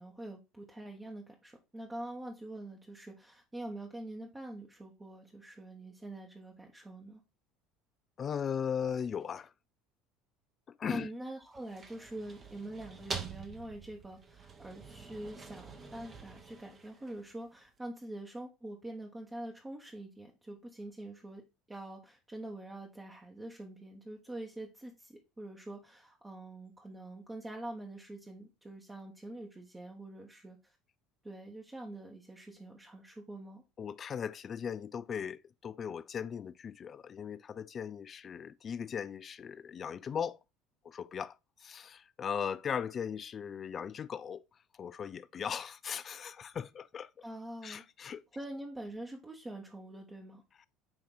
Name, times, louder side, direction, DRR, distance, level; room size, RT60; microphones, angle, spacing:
voice 1, 0.0-7.2 10.9-21.4 21.7-30.8 31.2-33.6 47.2-47.8 48.3-50.4, right 1 dB, 15° right, 1.2 m, -45 dB
voice 2, 8.2-9.5 10.7-11.1 33.8-40.4 40.8-41.4 41.6-44.4 44.8-47.1 47.6-48.2, left 7 dB, 35° left, 0.4 m, -38 dB
sound 1, 11.4-17.5, right 5 dB, 35° right, 1.2 m, -46 dB
8.7 x 2.9 x 3.8 m
figure-of-eight pair, 65°, 0 cm